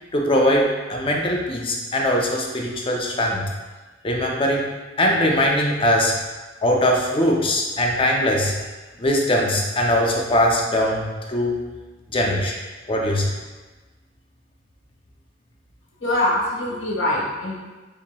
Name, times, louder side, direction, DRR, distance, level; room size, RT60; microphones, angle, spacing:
voice 1, 0.1-3.5 4.0-4.7 5.0-6.1 6.6-8.5 9.0-11.6 12.1-12.5 12.9-13.3, equal, 30° left, -1 dB, 0.6 m, -21 dB
voice 2, 16.0-17.6, left 1 dB, 75° left, -4 dB, 1.3 m, -23 dB
6.8 x 2.9 x 2.3 m, 1.2 s
head